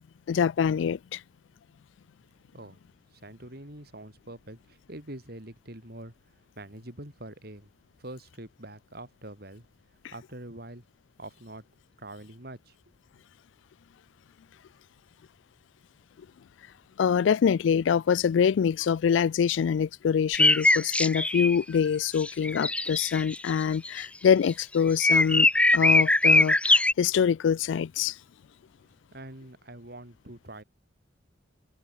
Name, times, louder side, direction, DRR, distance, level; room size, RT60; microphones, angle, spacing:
voice 1, 0.3-1.2 17.0-25.5 25.7-28.2, left 7 dB, 80° left, 0.3 m, -25 dB
voice 2, 3.1-6.1 6.6-7.7 8.0-9.7 10.1-10.9 11.2-11.7 12.0-12.8 29.1-30.6, right 1 dB, 55° right, 5.7 m, -44 dB
sound 1, 20.3-21.6 22.2-23.5 23.9-24.0 24.5-24.6 25.0-26.9, left 2 dB, 5° left, 0.4 m, -21 dB
head